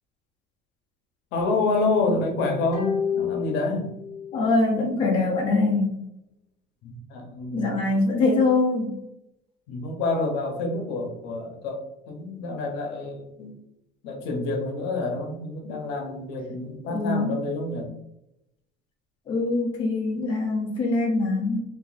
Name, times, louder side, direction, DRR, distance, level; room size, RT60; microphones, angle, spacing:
voice 1, 1.3-3.9 6.8-7.7 9.7-13.5 14.0-17.9, left 3 dB, 60° left, 2 dB, 0.8 m, -28 dB
sound 1, 2.7-4.4 4.7-4.8, left 7 dB, 15° right, 1.0 m, -29 dB
voice 2, 4.3-6.0 7.5-9.0 16.9-17.4 19.3-21.6, left 3 dB, 25° left, -2 dB, 0.6 m, -23 dB
2.7 x 2.5 x 3.9 m, 0.84 s
cardioid pair, 175°, 20 cm